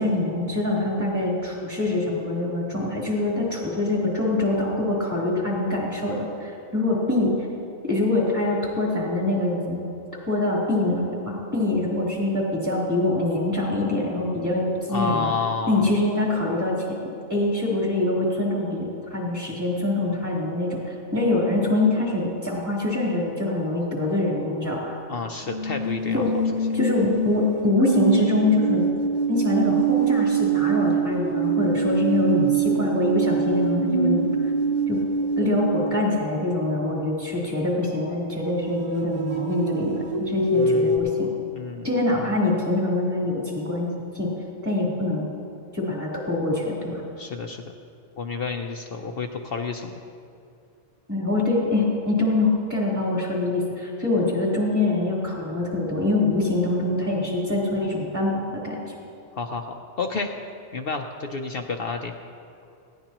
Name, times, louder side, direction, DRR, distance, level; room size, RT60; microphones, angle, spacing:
voice 1, 0.0-7.3 7.8-9.9 10.3-15.3 15.7-17.0 17.3-25.0 26.1-26.3 26.7-28.8 29.3-34.2 34.9-35.0 35.4-41.3 41.8-44.3 44.6-45.3 45.7-47.0 51.1-58.8, left 2 dB, 15° right, -5 dB, 3.5 m, -24 dB
voice 2, 14.9-15.9 25.1-26.2 40.5-41.1 41.5-41.9 47.2-47.6 48.2-49.9 59.3-60.3 60.7-62.1, left 4 dB, 60° left, 4 dB, 0.9 m, -30 dB
sound 1, 25.5-36.5 38.3-41.0, right 4 dB, 35° right, 1.1 m, -24 dB
19.5 x 16.5 x 3.0 m, 2.5 s
omnidirectional pair, 1.2 m